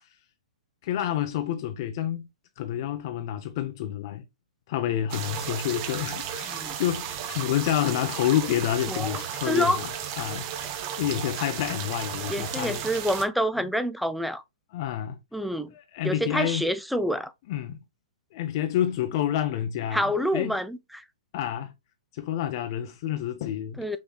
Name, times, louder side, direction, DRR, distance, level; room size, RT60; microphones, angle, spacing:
voice 1, 0.8-2.3 2.6-4.2 4.7-9.9 10.2-12.8 14.7-15.2 15.7-16.7 17.5-17.8 18.3-20.6 21.3-21.7 22.1-24.0, left 11 dB, 45° left, 0.6 m, -29 dB
sound 1, 5.1-13.2, right 9 dB, 35° right, 0.7 m, -34 dB
voice 2, 8.9-9.8 12.3-14.4 15.3-15.7 16.0-17.3 19.9-21.0 23.8-24.0, equal, ahead, 0.3 m, -27 dB
5.4 x 3.1 x 2.2 m
figure-of-eight pair, 120°, 3 cm